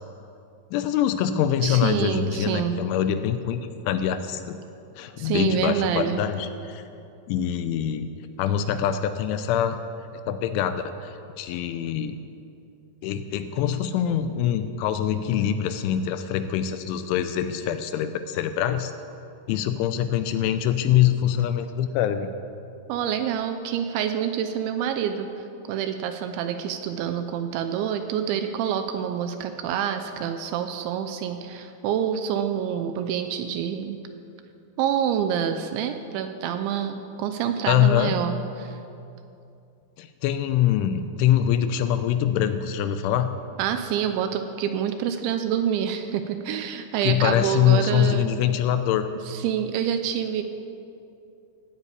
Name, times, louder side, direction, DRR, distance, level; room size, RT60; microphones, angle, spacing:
voice 1, 0.7-4.6 5.0-6.8 7.3-8.1 8.4-9.8 10.3-12.2 13.0-18.9 19.5-22.3 37.7-38.1 40.0-43.3 47.0-49.1, left 10 dB, 80° left, 10 dB, 3.0 m, -24 dB
voice 2, 1.6-2.8 5.2-6.2 22.9-25.3 25.7-34.0 34.8-38.8 43.6-48.4 49.3-50.4, right 9 dB, 80° right, 8 dB, 2.9 m, -27 dB
17.5 x 8.7 x 8.5 m, 2.7 s
omnidirectional pair, 5.7 m